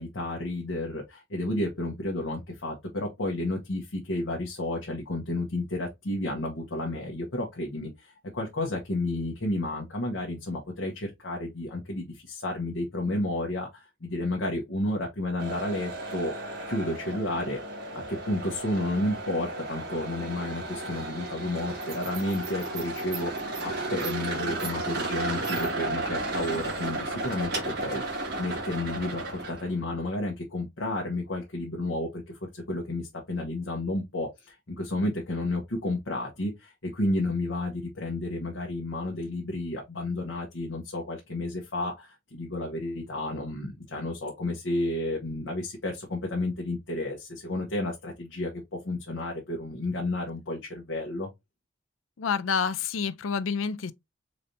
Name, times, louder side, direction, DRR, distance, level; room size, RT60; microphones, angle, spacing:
voice 1, 0.0-16.3 16.7-17.6 17.9-28.0 28.4-32.2 32.5-51.3, left 1 dB, 70° left, 1.0 m, -31 dB
sound 1, 15.4-29.7, right 2 dB, 55° right, 1.5 m, -34 dB
voice 2, 52.2-53.9, left 6 dB, 90° left, 0.5 m, -28 dB
4.1 x 3.3 x 2.6 m
head